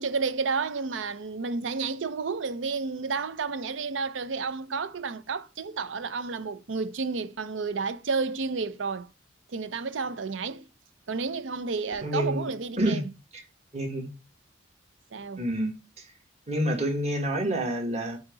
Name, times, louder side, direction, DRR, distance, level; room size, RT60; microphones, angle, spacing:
voice 1, 0.0-9.1 9.5-10.7 11.1-13.1 15.1-15.4, right 4 dB, 80° right, 0.6 m, -31 dB
voice 2, 12.0-12.4 12.8-13.0 13.7-14.1 15.4-16.1 16.5-18.2, right 1 dB, 35° right, 1.5 m, -28 dB
7.2 x 2.9 x 5.0 m
head